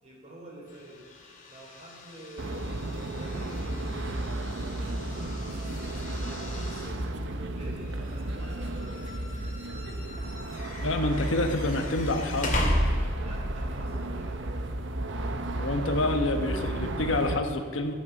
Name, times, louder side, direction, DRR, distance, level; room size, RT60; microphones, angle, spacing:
voice 1, 0.0-1.2 1.5-4.2 4.7-9.3 13.2-14.4, right 2 dB, 30° right, -3 dB, 4.3 m, -47 dB
sound 1, 0.7-13.5, left 1 dB, 40° left, 2.3 m, -36 dB
sound 2, 2.4-17.4, right 1 dB, 60° right, 0.9 m, -33 dB
voice 2, 10.8-12.6 15.5-17.9, left 2 dB, 65° left, 5 dB, 1.2 m, -28 dB
14.0 x 9.0 x 7.2 m, 2.2 s
head